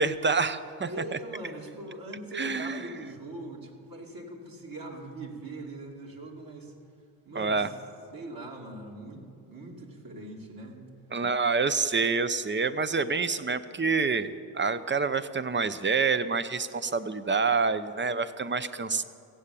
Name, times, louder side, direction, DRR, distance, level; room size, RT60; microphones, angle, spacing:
voice 1, 0.0-1.2 2.3-3.1 7.3-7.7 11.1-19.0, right 4 dB, 25° right, 13 dB, 0.8 m, -27 dB
voice 2, 0.8-6.7 7.2-7.7 8.1-10.8, right 1 dB, 45° right, -1 dB, 2.7 m, -41 dB
15.5 x 7.5 x 8.4 m, 2.4 s
supercardioid pair, 50°, 48 cm